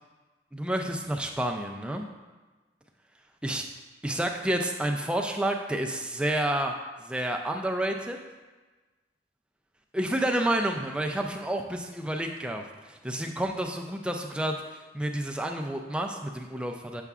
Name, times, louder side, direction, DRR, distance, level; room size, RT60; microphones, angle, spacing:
voice 1, 0.5-2.1 3.4-3.6 4.0-8.2 9.9-17.0, right 1 dB, 5° right, 2 dB, 0.4 m, -30 dB
6.9 x 6.7 x 2.4 m, 1.2 s
head